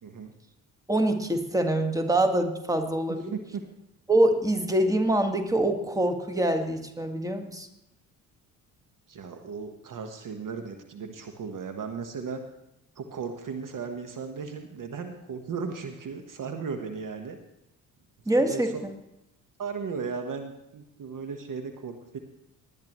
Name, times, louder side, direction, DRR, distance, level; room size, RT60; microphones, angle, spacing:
voice 1, 0.0-0.3 3.1-3.6 9.1-12.4 12.9-17.4 18.4-18.8 19.6-22.2, right 5 dB, 45° right, 6 dB, 1.4 m, -36 dB
voice 2, 0.9-3.3 4.1-7.7 18.3-18.7, right 1 dB, 5° right, 5 dB, 1.8 m, -25 dB
19.0 x 10.5 x 3.1 m, 0.87 s
figure-of-eight pair, 50°, 46 cm